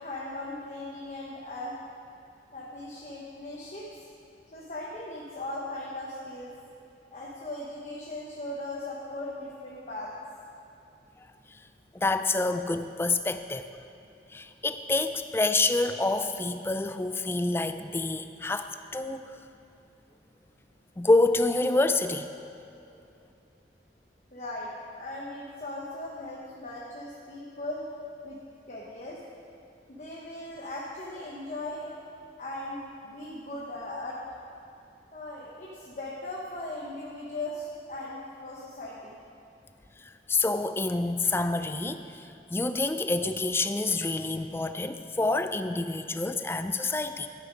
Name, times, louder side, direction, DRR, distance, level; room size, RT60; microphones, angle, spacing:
voice 1, 0.0-1.8 2.5-3.9 4.5-6.5 7.1-10.1 24.3-27.8 28.2-28.4 28.7-29.2 29.9-31.9 32.4-34.2 35.1-39.2, left 1 dB, 40° left, -4 dB, 1.1 m, -38 dB
voice 2, 11.2-11.6 11.9-13.7 14.3-19.4 21.0-22.3 40.0-47.3, left 2 dB, 15° left, 9 dB, 0.3 m, -27 dB
11.5 x 9.3 x 5.2 m, 2.7 s
head